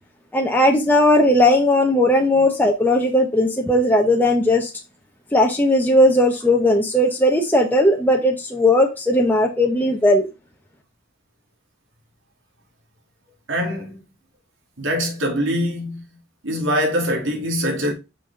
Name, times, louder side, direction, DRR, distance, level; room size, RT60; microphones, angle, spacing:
voice 1, 0.3-4.7 5.3-10.3, left 1 dB, 10° left, 0.9 m, -17 dB
voice 2, 13.5-14.0 14.8-16.0 16.4-17.9, equal, 75° right, 2.4 m, -23 dB
6.0 x 5.6 x 3.3 m
head